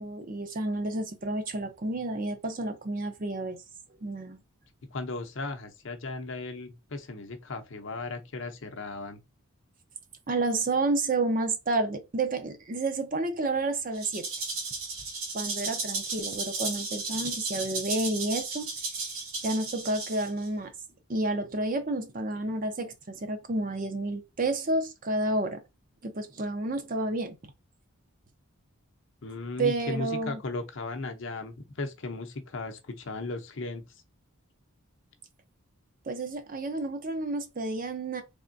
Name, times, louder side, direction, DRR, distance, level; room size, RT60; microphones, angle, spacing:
voice 1, 0.0-3.6 4.0-4.4 10.3-14.3 15.3-18.7 19.4-20.7 21.1-25.6 26.0-27.4 29.6-30.4 36.1-38.2, right 2 dB, 40° right, 0.6 m, -30 dB
voice 2, 4.9-9.2 29.2-33.8, left 3 dB, 55° left, 0.6 m, -36 dB
Rattle (instrument), 13.9-20.5, right 3 dB, 75° right, 1.3 m, -34 dB
3.5 x 3.3 x 2.6 m
head